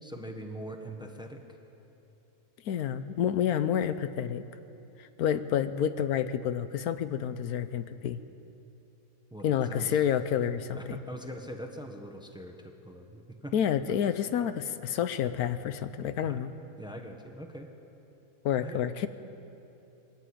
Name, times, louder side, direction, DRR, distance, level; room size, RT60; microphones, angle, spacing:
voice 1, 0.0-1.4 9.3-10.0 10.7-13.5 16.2-16.4 16.8-17.7 18.6-18.8, right 1 dB, 5° right, 4 dB, 1.2 m, -42 dB
voice 2, 2.6-4.4 5.0-8.2 9.4-11.0 13.5-16.5 18.4-19.1, left 9 dB, 85° left, 12 dB, 1.2 m, -29 dB
21.0 x 14.0 x 8.7 m, 2.9 s
omnidirectional pair, 1.6 m